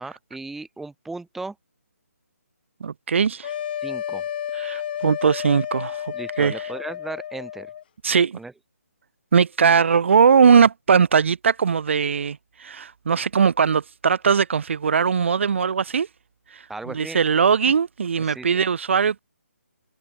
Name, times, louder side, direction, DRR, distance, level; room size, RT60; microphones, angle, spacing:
voice 1, 0.0-1.5 3.8-4.2 6.1-7.7 8.3-8.5 16.7-17.2 18.2-18.5, right 3 dB, 5° right, 1.6 m, -36 dB
voice 2, 2.8-3.5 4.5-6.5 8.0-8.4 9.3-16.1 16.5-16.6 16.9-19.2, right 6 dB, 55° right, 0.9 m, -20 dB
sound 1, 3.4-7.8, left 10 dB, 40° left, 6.6 m, -31 dB
figure-of-eight pair, 150°, 8 cm